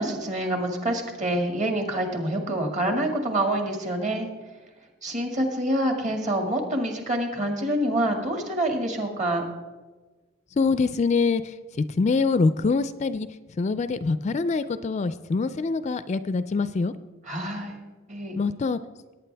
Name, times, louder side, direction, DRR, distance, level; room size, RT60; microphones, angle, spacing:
voice 1, 0.0-4.3 5.0-9.4 17.3-17.8 18.1-18.4, right 1 dB, 35° right, 3 dB, 1.9 m, -26 dB
voice 2, 10.5-16.9 18.4-18.8, left 4 dB, 35° left, 14 dB, 0.3 m, -25 dB
18.0 x 9.1 x 3.4 m, 1.3 s
head